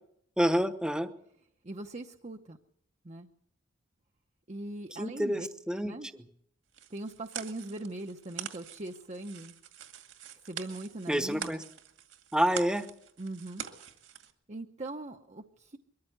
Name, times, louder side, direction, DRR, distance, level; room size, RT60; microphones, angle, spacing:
voice 1, 0.4-1.1 5.0-5.9 11.1-11.6 12.3-12.9, equal, 5° right, 10 dB, 1.0 m, -28 dB
voice 2, 1.6-2.6 3.0-3.3 4.5-5.5 5.8-6.1 6.9-9.6 10.4-11.6 13.2-13.6 14.5-15.8, right 2 dB, 35° right, 4 dB, 0.9 m, -40 dB
sound 1, 6.7-14.3, right 8 dB, 70° right, 2.2 m, -45 dB
22.5 x 14.5 x 8.1 m, 0.72 s
head